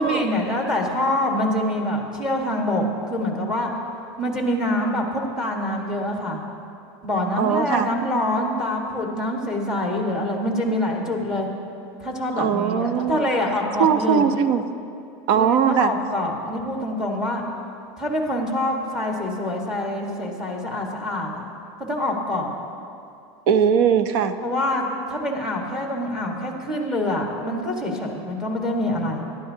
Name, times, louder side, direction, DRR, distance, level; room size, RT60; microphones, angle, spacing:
voice 1, 0.0-3.7 4.2-6.4 7.0-11.5 12.0-14.2 15.3-17.4 18.0-21.4 21.8-22.5 24.4-29.2, left 1 dB, 5° right, 0 dB, 1.4 m, -25 dB
voice 2, 7.4-7.9 12.4-13.3 13.8-14.6 15.3-15.9 23.5-24.4, right 8 dB, 55° right, 10 dB, 0.6 m, -20 dB
20.5 x 11.5 x 2.8 m, 2.6 s
supercardioid pair, 170°, 14 cm